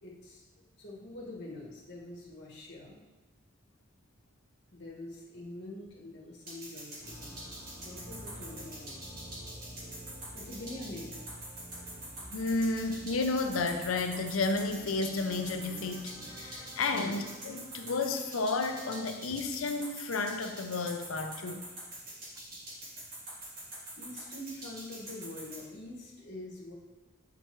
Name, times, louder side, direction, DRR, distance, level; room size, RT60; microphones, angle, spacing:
voice 1, 0.0-3.0 4.7-9.0 10.3-11.2 16.9-17.2 24.0-26.7, left 1 dB, 55° left, -5 dB, 1.3 m, -45 dB
sound 1, 6.5-25.6, right 1 dB, 45° right, 1.6 m, -44 dB
sound 2, 7.0-18.9, equal, 20° right, 1.0 m, -50 dB
voice 2, 12.3-21.6, left 3 dB, 80° left, 6 dB, 0.6 m, -32 dB
7.8 x 4.5 x 3.1 m, 1.2 s
head